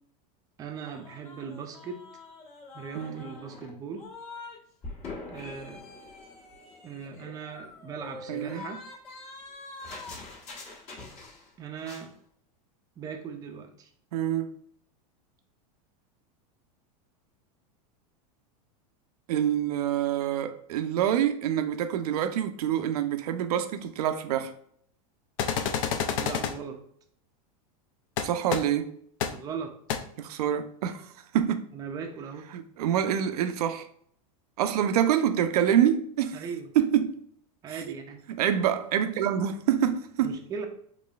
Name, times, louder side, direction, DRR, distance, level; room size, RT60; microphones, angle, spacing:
voice 1, 0.6-2.0 2.7-4.0 5.3-5.8 6.8-8.8 11.6-12.1 13.0-13.9 26.2-26.8 29.3-29.7 31.7-32.5 36.3-36.7 37.6-38.2 40.2-40.7, right 6 dB, 20° right, 0.4 m, -39 dB
sound 1, 0.8-4.6 4.8-11.5 11.8-12.1, left 3 dB, 35° left, 1.2 m, -44 dB
voice 2, 8.3-8.6 14.1-14.6 19.3-24.5 28.2-28.9 30.2-31.1 31.3-31.7 32.5-33.8 34.6-36.4 36.8-37.2 37.7-37.8 38.3-40.4, right 9 dB, 85° right, 0.5 m, -26 dB
sound 2, 25.4-26.5 28.2-28.3 28.5-28.6 29.2-29.3 29.9-30.0, left 8 dB, 65° left, 0.5 m, -28 dB
4.0 x 3.0 x 2.3 m
supercardioid pair, 140°, 19 cm